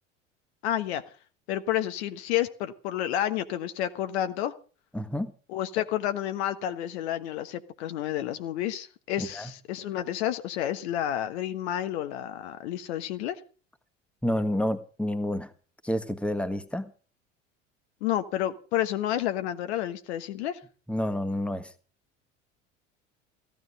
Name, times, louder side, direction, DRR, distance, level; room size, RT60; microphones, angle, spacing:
voice 1, 0.6-1.0 1.5-4.5 5.5-13.4 18.0-20.6, left 12 dB, 60° left, 1.3 m, -30 dB
voice 2, 4.9-5.3 9.2-9.5 14.2-15.5 15.8-16.9 20.9-21.7, left 1 dB, 5° left, 1.6 m, -29 dB
15.5 x 12.0 x 5.4 m
figure-of-eight pair, 70°, 37 cm